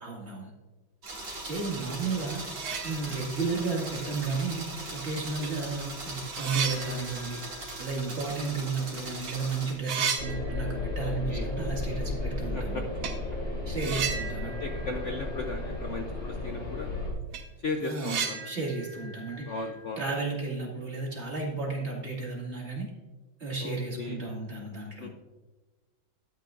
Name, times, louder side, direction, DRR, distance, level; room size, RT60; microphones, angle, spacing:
voice 1, 0.0-0.5 1.4-2.4 2.8-4.6 4.9-7.4 7.8-12.8 13.7-14.5 17.8-19.6 20.0-22.9 23.4-25.1, right 4 dB, 35° right, -3 dB, 2.3 m, -33 dB
sound 1, 1.0-9.7, right 2 dB, 60° right, 2.9 m, -39 dB
sound 2, 2.1-2.2 2.4-3.5 3.9-4.0 4.9-5.0 5.4-8.9 9.1-9.4 9.6-11.2 11.4-11.5 13.0-13.2 13.8-15.9 16.2-16.3 16.7-16.8 17.1-20.3, right 6 dB, 75° right, 1.9 m, -36 dB
sound 3, 10.2-17.1, left 2 dB, 45° left, 3.1 m, -34 dB
voice 2, 11.0-11.5 12.5-12.8 13.8-14.1 14.4-16.9 17.6-18.5 19.4-20.0 23.6-24.2 25.0-25.1, left 3 dB, 65° left, 3 dB, 0.7 m, -36 dB
12.5 x 9.0 x 2.5 m, 1.2 s
omnidirectional pair, 2.2 m